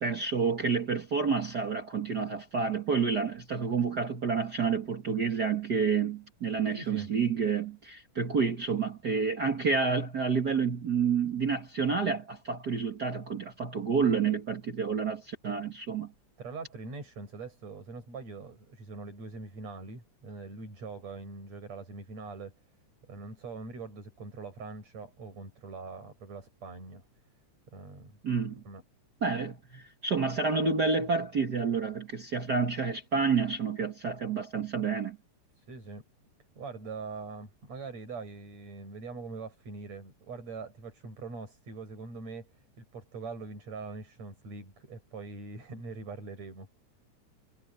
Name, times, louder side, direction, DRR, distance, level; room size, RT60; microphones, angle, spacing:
voice 1, 0.0-16.1 28.2-28.6 29.2-35.2, right 5 dB, 40° right, 1.8 m, -29 dB
voice 2, 6.7-7.1 16.4-22.6 23.1-27.0 27.7-28.2 28.7-28.8 35.6-36.0 36.6-46.7, right 4 dB, 60° right, 8.8 m, -43 dB
omnidirectional pair, 3.4 m